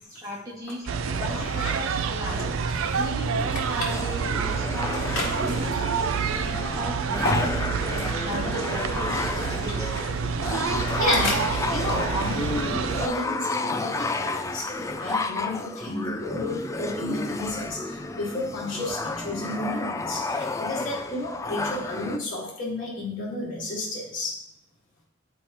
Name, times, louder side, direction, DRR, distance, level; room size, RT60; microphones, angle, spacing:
voice 1, 0.1-0.9 1.2-2.5 3.0-5.9 6.3-10.1, equal, 15° right, -5 dB, 2.0 m, -37 dB
sound 1, 0.9-13.1, right 6 dB, 75° right, 0.4 m, -28 dB
voice 2, 1.2-1.8 2.3-2.5 5.1-5.3 7.2-7.5 8.3-8.4 10.0-10.1 10.4-14.7 15.0-24.4, left 1 dB, 40° left, -9 dB, 1.9 m, -31 dB
sound 2, 2.3-22.2, left 3 dB, 15° left, 0.3 m, -32 dB
11.5 x 4.4 x 3.0 m, 0.76 s
head